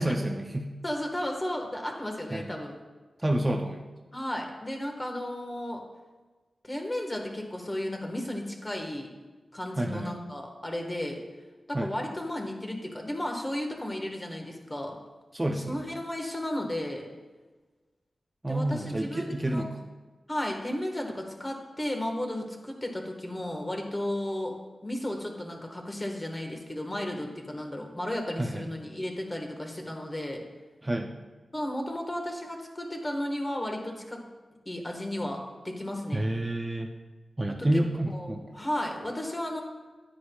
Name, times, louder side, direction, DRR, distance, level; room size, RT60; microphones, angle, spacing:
voice 1, 0.0-0.7 2.3-2.5 3.2-3.8 9.8-10.2 11.7-11.9 15.3-15.8 18.4-19.8 28.4-28.7 30.8-31.2 36.1-36.9 37.4-38.4, right 1 dB, 20° right, 2 dB, 0.6 m, -29 dB
voice 2, 0.8-2.8 4.1-5.8 6.6-9.1 9.5-11.2 11.7-14.9 15.5-17.1 18.5-19.6 20.3-30.4 31.5-34.2 34.6-36.3 37.5-37.7 38.1-39.6, left 1 dB, 20° left, 2 dB, 1.4 m, -34 dB
10.0 x 9.5 x 2.3 m, 1.3 s
wide cardioid pair, 75°, 0 cm